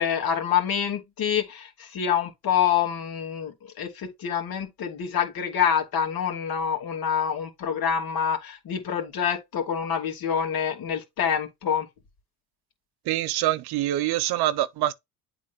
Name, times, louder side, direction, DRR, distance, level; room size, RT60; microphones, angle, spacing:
voice 1, 0.0-11.9, left 8 dB, 55° left, 2.5 m, -26 dB
voice 2, 13.1-14.9, right 14 dB, 60° right, 0.7 m, -25 dB
8.5 x 3.8 x 3.6 m
supercardioid pair, 75°, 42 cm